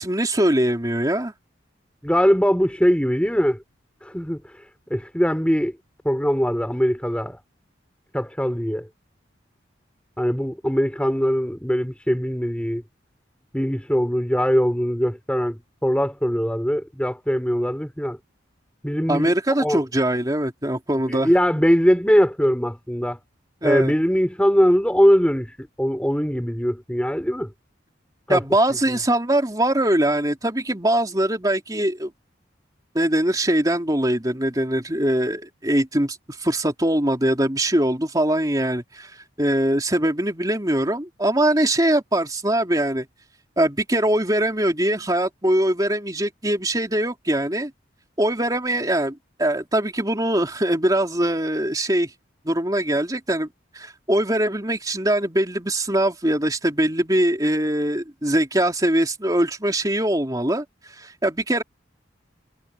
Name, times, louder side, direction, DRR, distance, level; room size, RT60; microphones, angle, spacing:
voice 1, 0.0-1.3 19.1-21.3 23.6-23.9 28.3-32.1 32.9-39.1 39.4-43.1 43.6-47.7 48.2-52.1 52.4-53.5 53.7-60.6 61.0-61.6, right 1 dB, 20° right, 3.2 m, -22 dB
voice 2, 2.0-3.6 4.0-5.8 6.0-7.4 8.1-8.9 10.2-12.8 13.5-18.2 18.8-19.3 19.6-19.8 21.1-23.2 23.6-27.5 28.3-28.4, equal, 5° left, 5.6 m, -21 dB
head